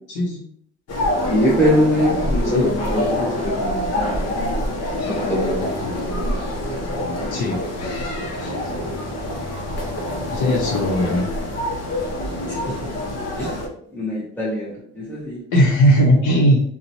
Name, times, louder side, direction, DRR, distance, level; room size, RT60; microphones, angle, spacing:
voice 1, 0.1-0.4 2.5-2.7 7.3-7.6 8.4-8.5 10.3-11.2 15.5-16.6, equal, 85° left, -1 dB, 0.8 m, -18 dB
sound 1, 0.9-13.7, left 1 dB, 55° left, 0.8 m, -25 dB
voice 2, 1.3-4.3 5.2-6.4 10.6-10.7 12.5-12.6 13.4-13.6 13.9-15.4, equal, 5° left, -6 dB, 0.8 m, -23 dB
2.9 x 2.2 x 2.6 m, 0.65 s
cardioid pair, 90°, 30 cm